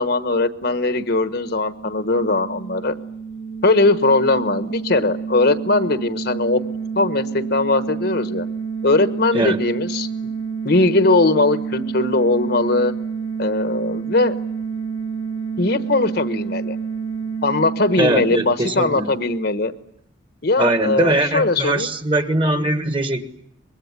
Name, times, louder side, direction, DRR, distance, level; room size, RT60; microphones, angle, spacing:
voice 1, 0.0-2.9 3.6-6.6 7.0-8.5 8.8-10.1 10.6-12.9 13.4-14.3 15.6-16.8 17.4-19.7 20.4-21.9, left 2 dB, 55° left, 11 dB, 1.2 m, -19 dB
sound 1, 1.5-19.0, right 6 dB, 85° left, 1.7 m, -29 dB
voice 2, 18.0-19.1 20.6-23.2, right 2 dB, 25° right, 9 dB, 1.6 m, -21 dB
24.5 x 21.5 x 9.6 m, 0.71 s
head